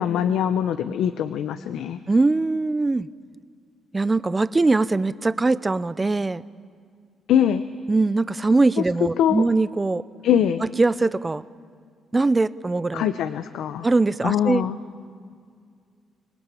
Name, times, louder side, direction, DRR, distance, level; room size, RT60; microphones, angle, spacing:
voice 1, 0.0-2.0 7.3-7.6 8.8-8.9 9.2-9.4 10.2-10.7 12.9-13.9 14.2-14.8, left 9 dB, 80° left, 10 dB, 0.7 m, -22 dB
voice 2, 2.1-3.1 3.9-6.4 7.9-10.0 10.8-11.5 12.1-13.1 13.8-14.7, right 3 dB, 20° right, 16 dB, 0.6 m, -21 dB
25.5 x 20.5 x 8.4 m, 2.1 s
cardioid pair, 90°, 0 cm